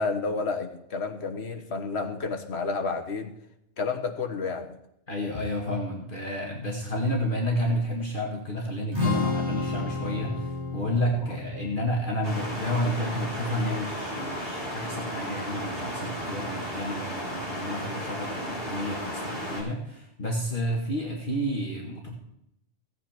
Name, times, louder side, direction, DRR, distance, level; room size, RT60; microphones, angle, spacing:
voice 1, 0.0-3.3 3.8-4.8 11.3-11.4, left 4 dB, 65° left, 4 dB, 1.6 m, -30 dB
voice 2, 5.1-22.1, equal, 45° left, -1 dB, 2.1 m, -30 dB
Strum, 8.9-15.2, left 3 dB, 20° right, 4.0 m, -33 dB
sound 1, 12.2-19.6, equal, 20° left, 6.3 m, -34 dB
16.5 x 9.0 x 4.4 m, 0.79 s
omnidirectional pair, 1.2 m